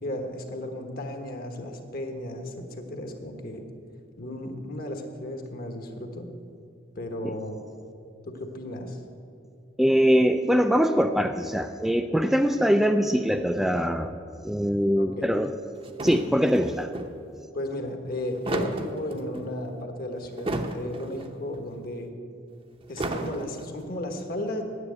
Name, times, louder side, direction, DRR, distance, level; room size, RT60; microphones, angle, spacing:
voice 1, 0.0-3.6 4.2-6.3 6.9-7.6 8.3-9.0 15.0-15.3 17.5-22.1 22.9-24.6, left 1 dB, 50° left, 4 dB, 1.3 m, -34 dB
voice 2, 9.8-14.1 14.4-15.5 16.0-16.9, equal, ahead, 7 dB, 0.3 m, -22 dB
sound 1, 15.9-17.1 18.1-19.5 20.2-21.3 21.5-21.6 22.8-23.8, right 2 dB, 30° right, 0.8 m, -33 dB
9.8 x 8.7 x 8.2 m, 2.4 s
head